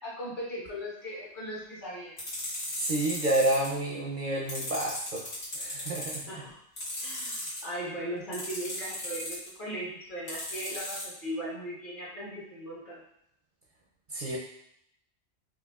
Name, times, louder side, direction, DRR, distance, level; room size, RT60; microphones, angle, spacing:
voice 1, 0.0-2.1 6.3-6.6 7.0-13.0, equal, 50° left, -7 dB, 1.4 m, -38 dB
sound 1, 2.2-3.7 4.5-6.2 6.8-7.6 8.3-9.5 10.3-11.0, left 1 dB, 85° left, 1.7 m, -36 dB
voice 2, 2.8-6.3 14.1-14.4, right 1 dB, 55° right, -4 dB, 0.6 m, -30 dB
4.7 x 2.4 x 2.3 m, 0.72 s
omnidirectional pair, 1.1 m